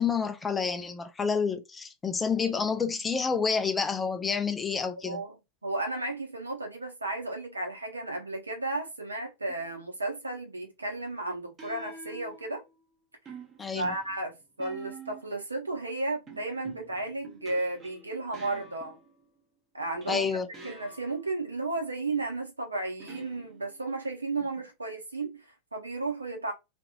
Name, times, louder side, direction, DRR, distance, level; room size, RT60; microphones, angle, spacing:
voice 1, 0.0-5.2 13.6-13.9 20.1-20.5, left 5 dB, 15° left, 0.5 m, -29 dB
voice 2, 5.0-5.4 5.6-12.6 13.7-19.0 19.7-20.3 20.6-26.5, right 2 dB, 80° right, 0.9 m, -34 dB
sound 1, 9.5-9.8 11.6-12.8 13.3-15.4 16.3-19.3 20.0-21.3 23.0-23.9, right 3 dB, 25° right, 0.9 m, -48 dB
2.8 x 2.6 x 2.3 m
figure-of-eight pair, 90°, 0 cm